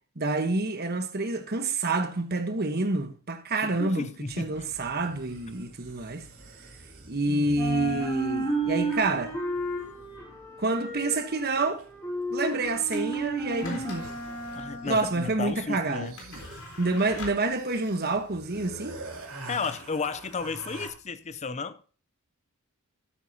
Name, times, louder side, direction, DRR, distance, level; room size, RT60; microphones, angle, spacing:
voice 1, 0.2-4.1 4.4-6.3 7.1-9.3 10.6-11.8 12.3-14.1 14.8-16.1 16.8-19.0, right 3 dB, 45° right, 1.2 m, -28 dB
voice 2, 3.6-4.7 13.6-14.0 14.5-16.2 19.5-21.8, left 4 dB, 30° left, 0.6 m, -33 dB
sound 1, 3.6-3.7 4.8-8.4 11.8-11.9 12.8-13.2 13.4-13.5 13.7-15.2 15.7-20.9, right 2 dB, 80° right, 2.8 m, -45 dB
sound 2, 4.3-7.2 7.5-15.6, right 1 dB, 15° left, 2.9 m, -33 dB
sound 3, 12.9-21.3, left 2 dB, 80° left, 3.8 m, -47 dB
13.0 x 8.4 x 2.8 m
head